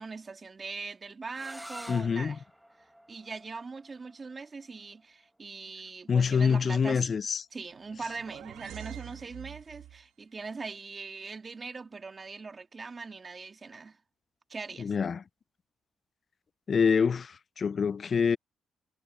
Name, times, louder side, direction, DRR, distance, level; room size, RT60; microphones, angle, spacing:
voice 1, 0.0-2.4 3.1-7.2 7.5-14.0 14.5-14.9, right 4 dB, 35° right, 2.9 m, -41 dB
sound 1, 1.3-7.0, equal, 5° right, 1.1 m, -49 dB
voice 2, 1.9-2.4 6.1-7.4 14.8-15.2 16.7-18.4, left 6 dB, 45° left, 0.3 m, -26 dB
sound 2, 7.7-10.1, right 12 dB, 85° right, 1.2 m, -46 dB
cardioid pair, 90°, 0 cm